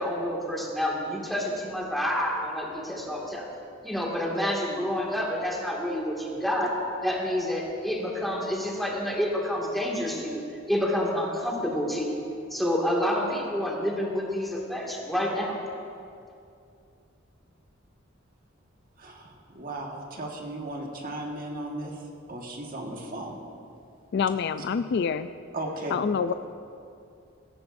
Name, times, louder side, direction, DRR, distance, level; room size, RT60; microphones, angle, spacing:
voice 1, 0.0-3.5 3.8-6.8 7.0-10.4 10.7-12.2 12.5-15.6, equal, ahead, -3 dB, 2.0 m, -28 dB
voice 2, 19.0-22.0 22.3-23.4 24.6-24.7 25.5-26.0, right 1 dB, 45° right, 0 dB, 1.6 m, -36 dB
voice 3, 24.1-25.3 25.9-26.3, left 6 dB, 55° left, 12 dB, 0.3 m, -26 dB
17.5 x 15.5 x 2.6 m, 2.5 s
head